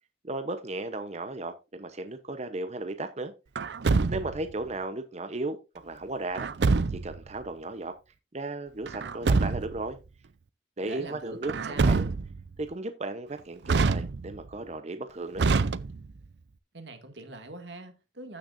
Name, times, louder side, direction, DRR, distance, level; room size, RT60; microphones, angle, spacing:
voice 1, 0.2-3.3 4.1-6.5 6.9-7.9 8.3-10.0 10.8-12.1 12.6-15.5, right 2 dB, 40° right, 0.8 m, -35 dB
Truck, 3.6-4.5 6.4-7.2 8.9-9.8 11.4-12.5 13.7-14.5 15.4-16.3, right 4 dB, 75° right, 0.5 m, -26 dB
voice 2, 10.8-11.9 16.7-18.4, right 2 dB, 90° right, 2.2 m, -43 dB
14.5 x 6.4 x 2.6 m
head